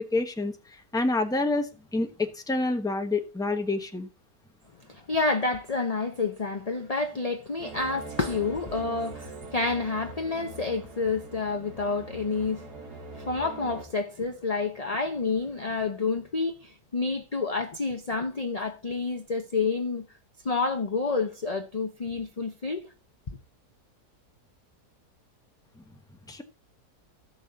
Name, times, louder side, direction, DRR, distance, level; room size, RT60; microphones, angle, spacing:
voice 1, 0.1-0.5 0.9-4.1 26.3-26.4, left 2 dB, 5° left, 0.9 m, -27 dB
voice 2, 4.9-12.6 13.1-20.1 20.4-22.9, left 4 dB, 35° left, 0.7 m, -29 dB
sound 1, 7.6-13.8, right 3 dB, 75° right, 2.6 m, -42 dB
14.5 x 6.3 x 4.0 m
omnidirectional pair, 1.7 m